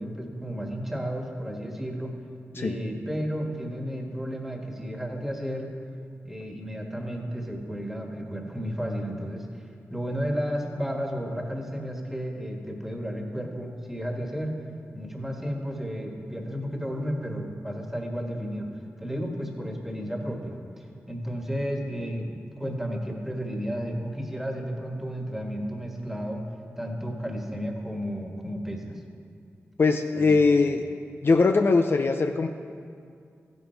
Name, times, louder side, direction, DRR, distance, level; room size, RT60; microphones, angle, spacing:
voice 1, 0.0-2.1 2.5-5.7 6.2-9.6 9.9-14.5 14.9-18.7 19.0-26.4 26.8-28.9 30.2-30.3 30.6-30.8, equal, 5° right, 1 dB, 1.7 m, -32 dB
voice 2, 29.8-30.8 31.2-32.5, left 4 dB, 50° left, 6 dB, 0.5 m, -21 dB
15.0 x 10.5 x 4.6 m, 2.3 s
wide cardioid pair, 90°, 5 cm